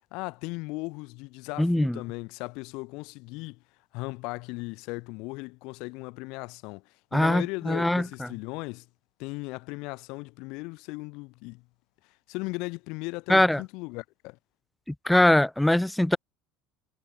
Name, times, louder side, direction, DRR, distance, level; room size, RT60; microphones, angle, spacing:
voice 1, 0.1-3.6 3.9-8.9 9.2-11.6 12.3-14.4, left 26 dB, 60° left, 0.6 m, -37 dB
voice 2, 1.6-2.0 7.1-8.3 13.3-13.6 14.9-16.2, left 1 dB, 5° left, 0.4 m, -22 dB
cardioid pair, 155°, 0 cm